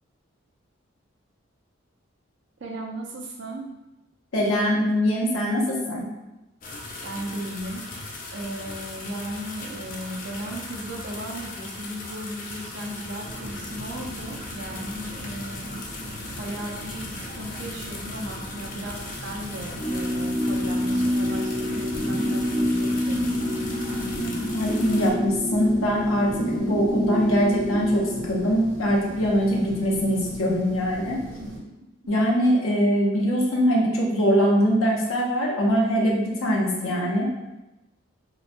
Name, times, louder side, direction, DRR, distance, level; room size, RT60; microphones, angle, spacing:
voice 1, 2.6-3.6 7.0-7.9 8.3-15.7 16.4-24.2 30.7-30.8 31.4-31.7, right 1 dB, 60° right, 0 dB, 0.5 m, -36 dB
voice 2, 4.3-6.1 24.5-31.2 32.1-37.2, equal, 85° left, -2 dB, 0.6 m, -22 dB
sound 1, 6.6-25.1, left 2 dB, 40° left, 0.3 m, -38 dB
sound 2, 13.2-31.6, right 1 dB, 75° right, 0.8 m, -40 dB
sound 3, 19.8-28.5, equal, 60° left, 1.4 m, -27 dB
3.0 x 2.1 x 2.5 m, 0.99 s
head